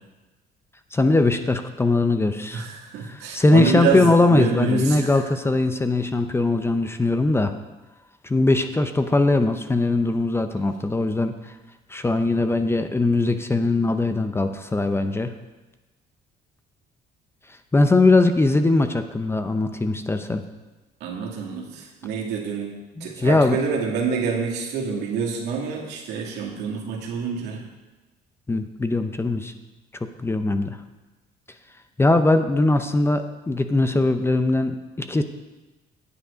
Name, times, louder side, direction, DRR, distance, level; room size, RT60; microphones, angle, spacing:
voice 1, 0.9-2.7 3.0-7.5 8.2-11.4 11.9-15.3 17.7-20.4 23.0-23.6 28.5-29.5 30.2-30.8 32.0-35.2, left 2 dB, 15° left, 8 dB, 0.6 m, -20 dB
voice 2, 2.5-5.2 21.0-22.7 23.0-27.6, right 5 dB, 80° right, -1 dB, 2.1 m, -27 dB
9.7 x 7.9 x 5.1 m, 1.1 s
cardioid pair, 110°, 17 cm